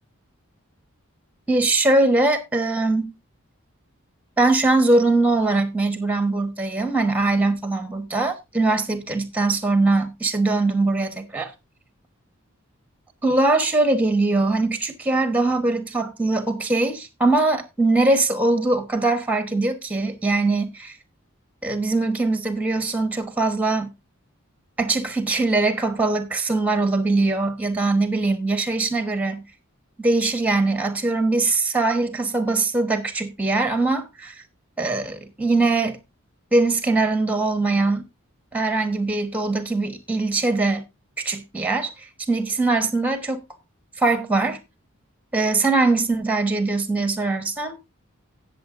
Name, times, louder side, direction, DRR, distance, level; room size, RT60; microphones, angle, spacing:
voice 1, 1.5-3.2 4.4-11.5 13.2-20.9 21.6-23.9 24.8-29.5 30.0-34.3 34.8-36.0 36.5-38.1 38.5-40.8 41.2-41.9 42.3-43.4 44.0-44.6 45.3-47.8, right 2 dB, 5° right, 1.2 m, -21 dB
17.5 x 7.0 x 2.6 m
head